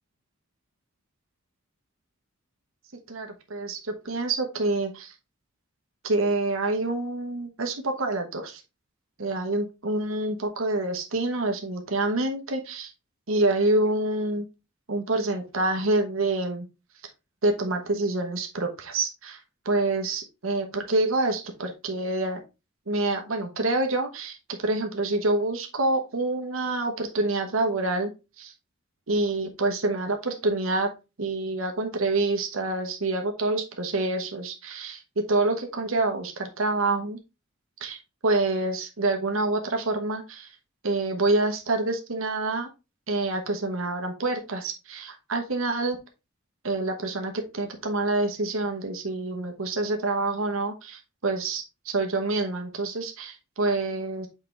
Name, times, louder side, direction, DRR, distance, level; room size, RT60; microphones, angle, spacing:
voice 1, 3.1-5.1 6.0-8.6 9.2-12.9 13.3-14.5 14.9-16.7 17.4-19.4 19.6-22.4 22.9-28.1 28.4-28.5 29.1-30.9 31.2-35.0 35.3-37.2 37.8-40.6 40.8-42.7 43.1-46.0 46.6-54.3, right 2 dB, 75° right, 3 dB, 1.2 m, -27 dB
6.6 x 4.6 x 3.4 m, 0.27 s
head